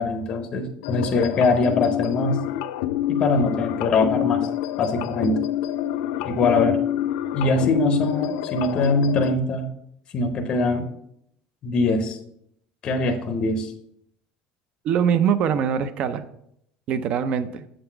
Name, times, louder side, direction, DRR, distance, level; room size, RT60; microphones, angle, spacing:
voice 1, 0.0-2.4 3.1-4.5 4.8-5.4 6.2-6.8 7.3-9.7 10.1-10.9 11.6-12.2 12.8-13.7, left 3 dB, 25° left, 6 dB, 0.6 m, -22 dB
sound 1, 0.8-9.3, left 12 dB, 75° left, 0.3 m, -27 dB
voice 2, 14.8-16.2 16.9-17.6, right 8 dB, 35° right, 13 dB, 0.4 m, -22 dB
7.6 x 4.0 x 4.4 m, 0.74 s
cardioid pair, 175°, 3 cm